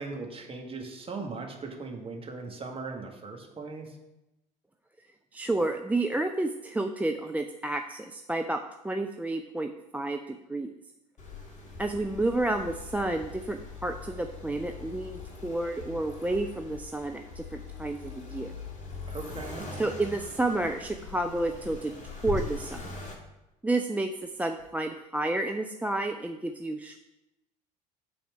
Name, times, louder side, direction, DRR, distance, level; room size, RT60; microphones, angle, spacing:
voice 1, 0.0-4.0 19.1-19.7, right 3 dB, 25° right, 1 dB, 1.8 m, -39 dB
voice 2, 5.3-10.7 11.8-18.5 19.8-21.9 22.2-22.9 23.6-27.0, right 2 dB, 5° right, 5 dB, 0.4 m, -30 dB
Accelerating revving vroom, 11.2-23.1, left 4 dB, 35° left, 2.1 m, -42 dB
sound 1, 20.0-25.1, right 1 dB, 85° right, 2.8 m, -46 dB
9.2 x 4.3 x 5.7 m, 0.94 s
figure-of-eight pair, 65°, 21 cm